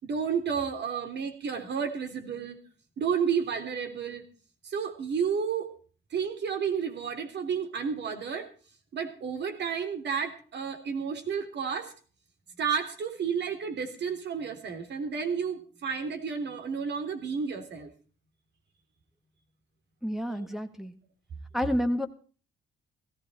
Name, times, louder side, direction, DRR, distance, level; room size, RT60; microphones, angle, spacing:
voice 1, 0.0-2.6 3.0-4.2 4.6-5.7 6.1-8.5 8.9-11.9 12.6-17.9 20.3-20.5, right 6 dB, 60° right, 6 dB, 3.2 m, -31 dB
voice 2, 20.0-20.9 21.5-22.1, equal, ahead, 4 dB, 1.8 m, -29 dB
16.5 x 15.0 x 4.3 m, 0.39 s
cardioid pair, 90°, 20 cm